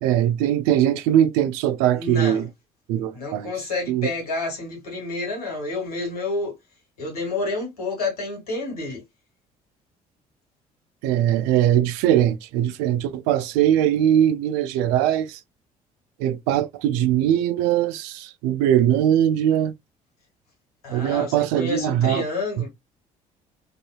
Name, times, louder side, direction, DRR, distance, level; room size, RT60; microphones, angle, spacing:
voice 1, 0.0-2.5 2.9-3.5 3.9-4.1 11.0-15.4 16.2-19.7 20.9-22.2, right 11 dB, 65° right, 0.4 m, -21 dB
voice 2, 1.9-2.4 3.1-6.5 7.0-9.0 20.8-22.7, left 3 dB, 75° left, 1.3 m, -29 dB
2.7 x 2.4 x 2.3 m
figure-of-eight pair, 50°, 19 cm